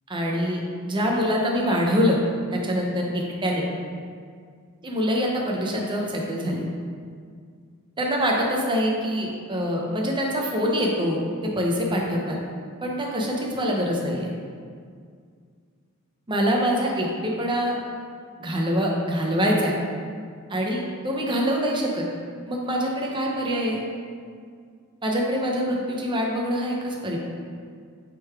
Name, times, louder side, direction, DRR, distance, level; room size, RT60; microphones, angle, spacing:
voice 1, 0.1-2.2 2.5-3.6 4.8-6.6 8.0-12.4 12.8-14.3 16.3-17.7 18.4-19.7 20.5-22.0 22.5-23.8 25.0-27.2, equal, 20° right, -1 dB, 0.7 m, -25 dB
5.9 x 3.8 x 4.7 m, 2.1 s
head